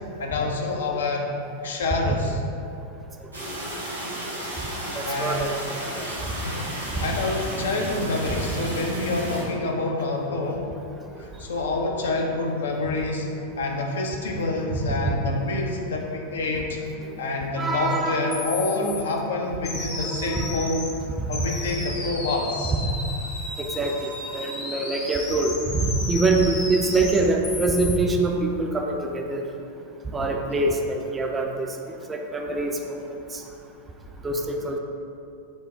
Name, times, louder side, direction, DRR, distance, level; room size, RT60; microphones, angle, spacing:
voice 1, 0.2-1.3 1.6-2.4 5.0-5.5 6.4-10.7 11.2-16.8 17.2-20.9 21.3-22.8 30.5-30.7, left 2 dB, 65° left, 1 dB, 0.4 m, -27 dB
sound 1, 3.3-9.4, right 1 dB, 85° right, 0.9 m, -32 dB
voice 2, 4.9-5.6 6.0-6.1 14.8-15.1 17.1-17.2 17.5-18.5 20.0-21.5 23.6-29.5 30.1-31.8 32.1-33.4 34.2-34.8, right 2 dB, 15° right, 2 dB, 0.3 m, -25 dB
sound 2, 18.3-19.0 19.6-20.9 21.3-28.0, left 2 dB, 30° left, 0.7 m, -34 dB
5.1 x 2.0 x 3.5 m, 2.6 s
figure-of-eight pair, 90°, 0 cm